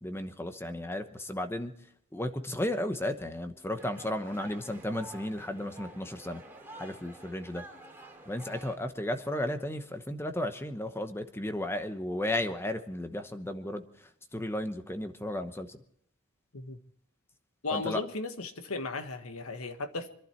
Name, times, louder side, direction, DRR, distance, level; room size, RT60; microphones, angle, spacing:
voice 1, 0.0-1.7 2.1-6.4 6.8-7.6 8.3-13.8 14.3-15.8 17.7-18.0, left 1 dB, 10° left, 1.0 m, -34 dB
sound 1, 3.7-8.7, right 1 dB, 10° right, 2.6 m, -49 dB
voice 2, 17.6-20.1, left 3 dB, 80° left, 1.4 m, -35 dB
25.5 x 11.5 x 4.5 m
head